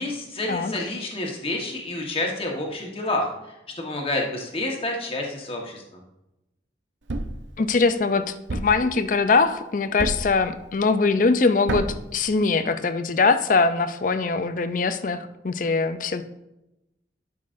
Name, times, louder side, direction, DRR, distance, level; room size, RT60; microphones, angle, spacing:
voice 1, 0.0-3.3 3.8-5.8, left 2 dB, 30° left, 0 dB, 1.3 m, -28 dB
Thump thud, 7.1-7.5 8.5-8.9 10.0-10.4 11.7-12.1, right 2 dB, 90° right, 0.7 m, -28 dB
voice 2, 7.6-16.2, left 4 dB, 45° left, 11 dB, 0.5 m, -22 dB
11.0 x 5.9 x 2.6 m, 0.91 s
head